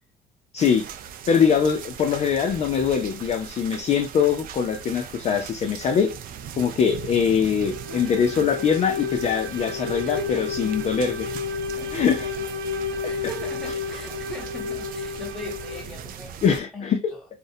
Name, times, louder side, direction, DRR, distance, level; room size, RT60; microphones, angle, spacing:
voice 1, 0.5-0.8 1.3-6.1 6.6-11.3 11.9-12.4 13.0-13.1 16.4-17.0, left 7 dB, 40° left, 0.4 m, -22 dB
sound 1, 0.6-16.6, right 8 dB, 60° right, 0.4 m, -39 dB
sound 2, 7.6-16.0, left 5 dB, 80° right, 0.9 m, -32 dB
voice 2, 7.9-8.6 9.6-9.8 10.0-10.8 11.8-12.5 12.9-17.3, left 1 dB, 5° left, 1.1 m, -40 dB
2.5 x 2.0 x 2.6 m
cardioid pair, 110°, 17 cm